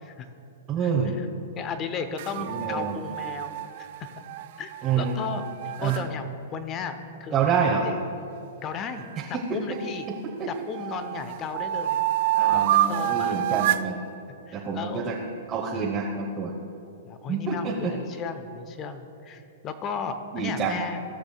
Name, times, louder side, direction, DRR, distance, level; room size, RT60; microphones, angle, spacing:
voice 1, 0.7-1.2 2.4-3.0 4.8-5.2 5.8-6.0 7.3-7.9 9.3-9.8 10.1-10.5 12.4-14.0 14.5-15.2 15.5-16.5 17.3-17.9 20.3-20.8, right 6 dB, 30° right, -2 dB, 0.9 m, -27 dB
voice 2, 1.6-3.9 4.6-7.9 8.6-9.1 9.5-10.1 10.5-12.0 12.5-13.5 14.5-15.2 17.0-21.0, left 5 dB, 30° left, 9 dB, 0.8 m, -35 dB
sound 1, 2.2-6.0 9.0-10.2 10.7-13.9, right 13 dB, 55° right, 0.3 m, -28 dB
16.5 x 6.4 x 2.3 m, 2.6 s
hypercardioid pair, 120°, 0 cm